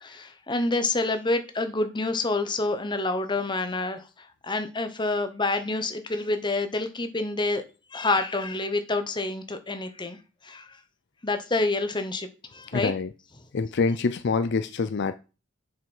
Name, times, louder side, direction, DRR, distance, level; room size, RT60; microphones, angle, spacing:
voice 1, 0.0-7.6 7.9-10.2 10.4-10.7 11.2-12.9, left 2 dB, 20° left, 0.9 m, -28 dB
voice 2, 12.7-13.1 13.5-15.1, left 4 dB, 55° left, 0.5 m, -25 dB
7.6 x 5.8 x 5.4 m
head